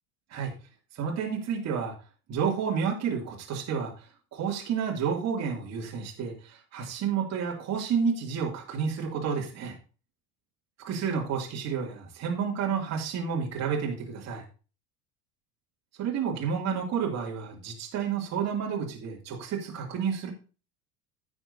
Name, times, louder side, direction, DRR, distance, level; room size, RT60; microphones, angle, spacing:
voice 1, 0.9-1.9 2.3-9.8 10.8-14.4 16.0-20.3, right 6 dB, 40° right, -1 dB, 2.6 m, -30 dB
15.5 x 6.1 x 2.7 m, 0.35 s
figure-of-eight pair, 70°, 42 cm